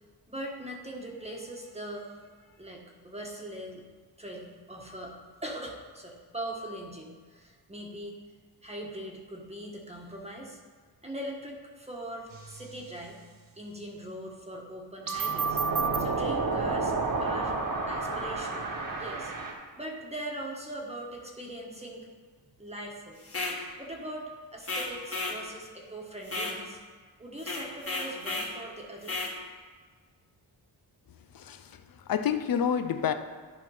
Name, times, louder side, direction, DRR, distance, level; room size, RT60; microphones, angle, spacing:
voice 1, 0.3-3.8 4.2-5.1 5.4-8.1 8.6-10.6 11.0-13.2 13.6-15.6 16.0-17.6 17.9-19.3 19.7-22.1 22.6-23.2 23.8-26.8 27.2-29.2, right 1 dB, 15° right, -1 dB, 1.4 m, -41 dB
sound 1, 12.3-12.6 15.1-19.5, right 4 dB, 50° right, 1.5 m, -30 dB
sound 2, 23.2-23.6 24.6-25.4 26.2-26.6 27.4-28.5 29.0-29.3, left 2 dB, 30° left, 1.8 m, -33 dB
voice 2, 31.3-31.8 32.1-33.1, left 8 dB, 50° left, 10 dB, 0.7 m, -28 dB
11.5 x 4.3 x 5.6 m, 1.5 s
cardioid pair, 100°, 43 cm